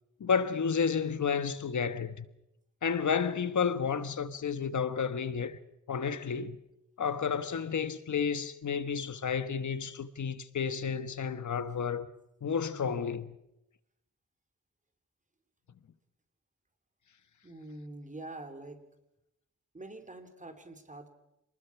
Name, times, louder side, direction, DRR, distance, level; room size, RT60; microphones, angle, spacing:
voice 1, 0.2-2.3 2.8-5.6 5.9-6.6 7.0-12.1 12.4-13.3, left 6 dB, 70° left, 1.3 m, -31 dB
voice 2, 17.4-18.8 19.7-21.1, right 2 dB, 25° right, 3.0 m, -45 dB
27.0 x 20.0 x 6.0 m
wide cardioid pair, 130°, 30 cm